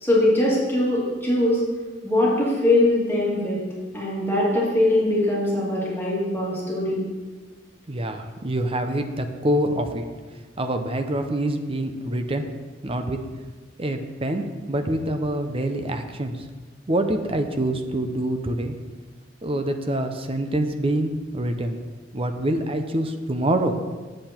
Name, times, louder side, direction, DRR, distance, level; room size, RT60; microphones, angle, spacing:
voice 1, 0.0-1.6 2.0-3.6 3.9-7.0, left 1 dB, 10° left, -7 dB, 2.6 m, -21 dB
voice 2, 7.9-10.0 10.6-12.4 12.8-13.2 13.8-16.5 16.9-18.7 19.4-21.8 22.1-23.7, right 1 dB, 30° right, 6 dB, 0.7 m, -25 dB
8.8 x 7.7 x 4.4 m, 1.3 s
head